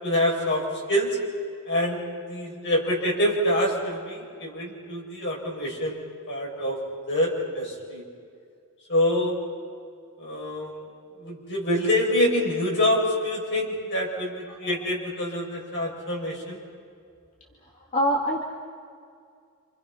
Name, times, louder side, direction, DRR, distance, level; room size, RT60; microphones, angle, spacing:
voice 1, 0.0-1.2 1.7-2.0 2.3-6.8 7.1-8.0 8.9-9.4 10.2-10.8 11.2-16.6, left 1 dB, 55° left, -2 dB, 7.1 m, -26 dB
voice 2, 17.8-18.4, equal, 35° left, -2 dB, 2.5 m, -25 dB
29.0 x 28.5 x 5.8 m, 2.3 s
head